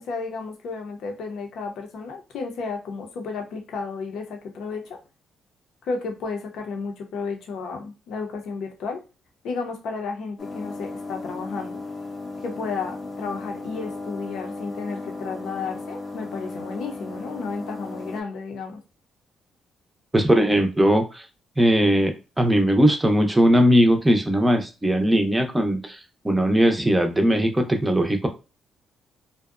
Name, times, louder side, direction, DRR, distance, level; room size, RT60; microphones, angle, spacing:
voice 1, 0.0-5.0 5.8-9.0 9.4-11.9 12.4-18.8, left 4 dB, 75° left, 3 dB, 0.6 m, -32 dB
sound 1, 10.4-18.2, left 3 dB, 35° left, 0.5 m, -35 dB
voice 2, 20.1-21.3 21.6-26.0 26.2-28.3, equal, 10° right, 4 dB, 0.5 m, -19 dB
2.6 x 2.1 x 2.4 m, 0.30 s
cardioid pair, 90°, 0 cm